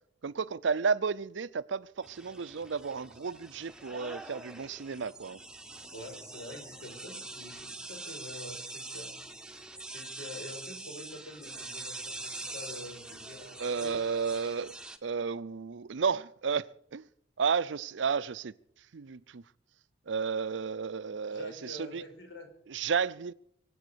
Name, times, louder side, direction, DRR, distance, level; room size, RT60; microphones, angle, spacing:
voice 1, 0.2-5.4 13.6-14.7 15.0-17.0 17.4-18.5 18.9-19.4 20.1-22.0 22.7-23.3, right 5 dB, 75° right, 0.5 m, -32 dB
sound 1, 2.0-15.0, right 2 dB, 5° right, 0.9 m, -44 dB
voice 2, 5.9-9.1 9.8-14.0 21.3-22.5, left 1 dB, 80° left, 4.8 m, -46 dB
24.0 x 8.6 x 6.8 m
head